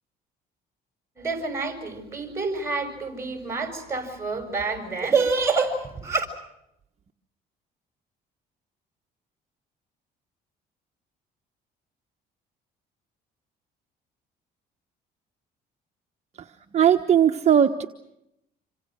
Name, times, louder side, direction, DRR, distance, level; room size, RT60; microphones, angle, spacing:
voice 1, 1.2-6.3, right 4 dB, 15° right, 6.8 m, -27 dB
voice 2, 16.4-17.9, right 9 dB, 40° right, 1.3 m, -19 dB
27.5 x 26.0 x 6.4 m
cardioid pair, 110°, 17 cm